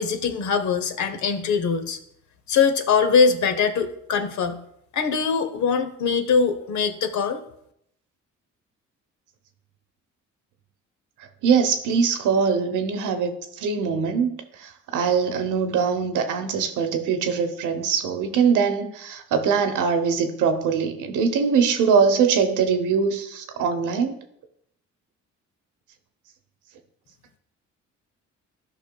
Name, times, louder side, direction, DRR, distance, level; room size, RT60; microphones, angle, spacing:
voice 1, 0.0-2.0 2.5-4.6 4.9-7.4, left 5 dB, 70° left, 0.9 m, -22 dB
voice 2, 11.4-24.2, right 6 dB, 85° right, 0.9 m, -22 dB
12.0 x 5.5 x 2.3 m
cardioid pair, 90°, 30 cm